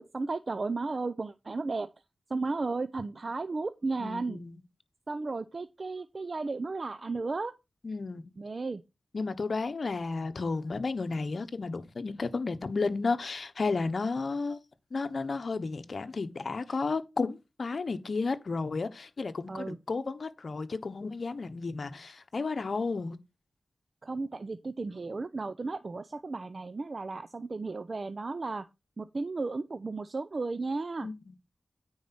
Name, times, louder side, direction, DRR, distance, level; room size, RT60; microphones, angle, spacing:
voice 1, 0.0-1.9 2.3-4.4 5.1-7.5 8.4-8.8 19.5-19.8 24.0-28.7 29.0-31.1, right 3 dB, 50° right, 0.7 m, -34 dB
voice 2, 4.0-4.6 7.8-8.2 9.1-14.6 14.9-23.2 31.0-31.3, left 4 dB, 65° left, 1.1 m, -33 dB
9.4 x 4.8 x 5.9 m
cardioid pair, 55°, 0 cm